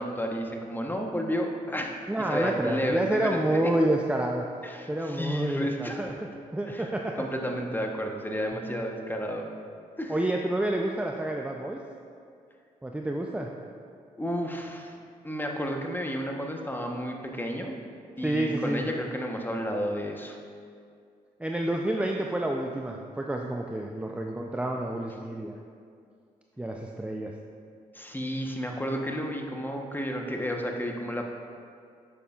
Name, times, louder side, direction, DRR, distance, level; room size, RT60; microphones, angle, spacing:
voice 1, 0.0-2.0 2.3-3.6 4.6-6.1 6.7-6.9 7.2-9.5 10.0-10.2 14.2-14.9 15.2-17.8 18.2-20.4 27.9-31.3, equal, 10° left, 2 dB, 1.1 m, -32 dB
voice 2, 2.1-4.4 4.9-6.1 6.5-7.2 8.7-8.8 10.1-11.8 12.8-13.5 18.2-18.9 21.4-25.6 26.6-27.3, right 1 dB, 5° right, 1 dB, 0.5 m, -29 dB
9.7 x 6.7 x 2.5 m, 2.3 s
hypercardioid pair, 45°, 16 cm